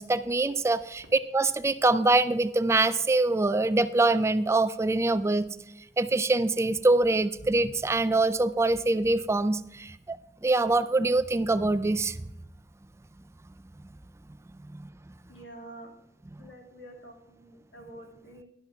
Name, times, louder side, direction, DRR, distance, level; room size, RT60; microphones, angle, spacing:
voice 1, 0.0-5.5 6.0-10.2 10.4-12.2, right 2 dB, 15° right, 13 dB, 0.4 m, -24 dB
voice 2, 15.3-15.9 16.4-18.4, right 1 dB, 80° left, 1 dB, 2.7 m, -47 dB
11.5 x 11.5 x 3.5 m, 0.85 s
head